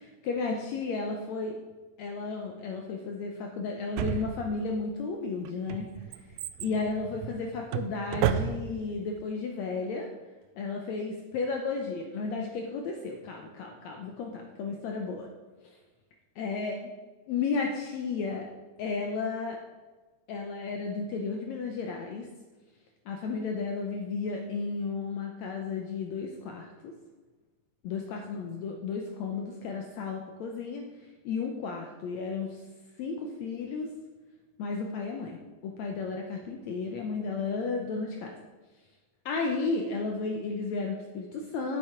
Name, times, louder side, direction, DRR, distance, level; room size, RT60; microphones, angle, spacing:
voice 1, 0.0-1.6 2.0-5.9 6.6-10.1 10.6-15.3 15.6-15.8 16.4-16.8 17.3-18.5 18.8-19.6 20.3-22.3 23.1-26.9 27.8-30.8 31.3-32.6 33.0-33.9 34.6-38.4 39.3-41.8, left 4 dB, 70° left, 2 dB, 1.8 m, -33 dB
Drawer open or close, 4.0-4.8 5.5-8.9 9.2-9.3, right 10 dB, 85° right, 2.1 m, -32 dB
8.8 x 7.6 x 5.0 m, 1.3 s
omnidirectional pair, 3.8 m